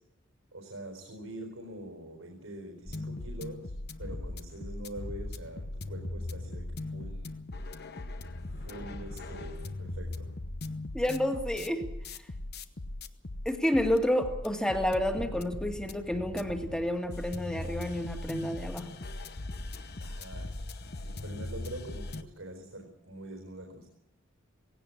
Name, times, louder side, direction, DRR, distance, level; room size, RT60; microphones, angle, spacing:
voice 1, 0.5-3.7 4.0-7.3 8.6-10.4 20.0-20.5 21.0-23.9, right 1 dB, 90° right, 2 dB, 4.2 m, -44 dB
sound 1, 2.9-22.2, left 2 dB, 55° left, 1.1 m, -39 dB
voice 2, 10.9-11.8 13.5-18.9, left 1 dB, 5° left, 5 dB, 2.0 m, -30 dB
18.5 x 17.0 x 8.5 m, 0.85 s
head